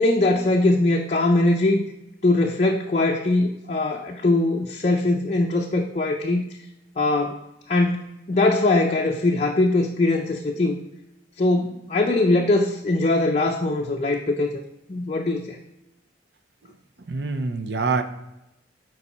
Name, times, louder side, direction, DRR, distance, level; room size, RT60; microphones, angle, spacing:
voice 1, 0.0-1.8 2.2-6.4 7.0-7.4 7.7-10.8 11.4-14.5 14.9-15.6, left 2 dB, 35° left, 1 dB, 0.5 m, -21 dB
voice 2, 17.1-18.0, right 4 dB, 60° right, 8 dB, 0.6 m, -25 dB
7.1 x 4.7 x 4.2 m, 0.92 s
head